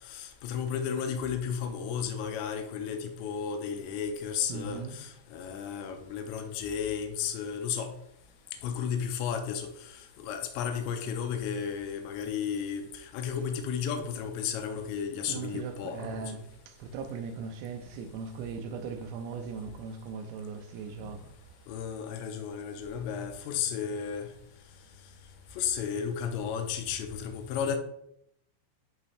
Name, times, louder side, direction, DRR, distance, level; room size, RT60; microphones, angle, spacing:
voice 1, 0.0-7.9 8.6-16.3 21.0-21.1 21.7-24.3 25.6-27.8, left 7 dB, 80° left, 2.8 m, -33 dB
voice 2, 4.5-5.0 15.3-21.3, right 5 dB, 80° right, 2.6 m, -39 dB
11.0 x 4.0 x 3.2 m
omnidirectional pair, 5.5 m